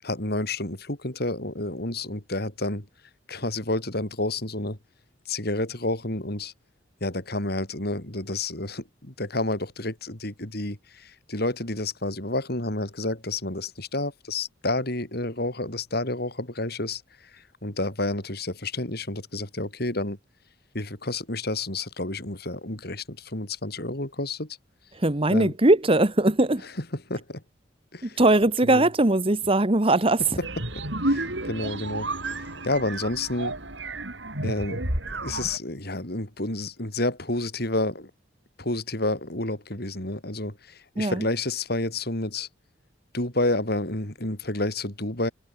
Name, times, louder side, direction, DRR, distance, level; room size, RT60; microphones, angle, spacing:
voice 1, 0.0-2.9 3.3-4.8 5.3-6.5 7.0-20.2 20.7-24.6 25.3-25.5 27.1-27.4 27.9-28.2 28.6-28.9 30.4-30.5 30.7-33.6 34.4-38.1 38.6-42.5 43.1-45.3, left 2 dB, 55° left, 4.9 m, -30 dB
voice 2, 24.9-26.7 28.0-30.2 41.0-41.3, right 2 dB, 30° right, 1.4 m, -20 dB
sound 1, 30.4-35.6, right 2 dB, 70° right, 6.8 m, -31 dB
head